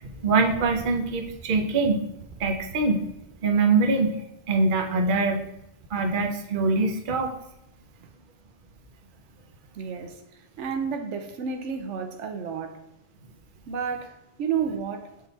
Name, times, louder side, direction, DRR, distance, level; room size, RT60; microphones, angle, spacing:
voice 1, 0.0-2.0 2.4-3.0 3.4-4.1 4.5-5.4 5.9-7.3, right 3 dB, 50° right, 0.8 m, -23 dB
voice 2, 9.7-12.8 13.7-15.2, right 6 dB, 85° right, 1.0 m, -31 dB
6.6 x 3.7 x 4.0 m
omnidirectional pair, 1.2 m